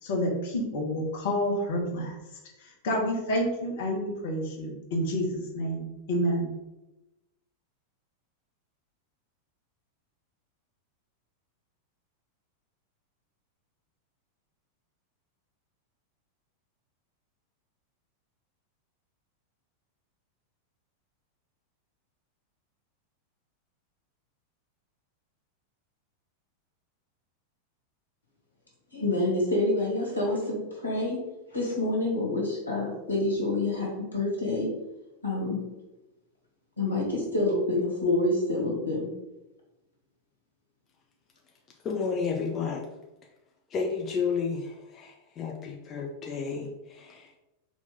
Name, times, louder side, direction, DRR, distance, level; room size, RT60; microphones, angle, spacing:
voice 1, 0.0-2.1 2.8-6.5, equal, 55° left, -2 dB, 1.3 m, -29 dB
voice 2, 28.9-31.2 31.5-34.7 35.2-35.6 36.8-39.1, left 2 dB, 85° left, -4 dB, 1.5 m, -27 dB
voice 3, 41.8-42.9 43.7-47.4, left 5 dB, 30° left, 0 dB, 0.6 m, -32 dB
4.1 x 2.9 x 3.9 m, 0.97 s
figure-of-eight pair, 90°, 0 cm